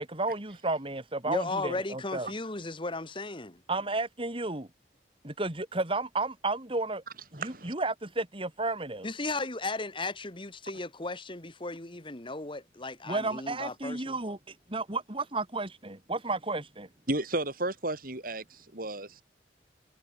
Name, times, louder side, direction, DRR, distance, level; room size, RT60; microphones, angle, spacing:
voice 1, 0.0-2.3 3.7-4.7 5.2-7.0 7.3-9.1 13.1-16.9, right 2 dB, 30° right, 2.6 m, -32 dB
voice 2, 1.3-3.6 9.0-14.2, left 2 dB, 30° left, 2.1 m, -36 dB
voice 3, 7.3-7.7 17.1-19.2, right 2 dB, 50° right, 5.3 m, -33 dB
head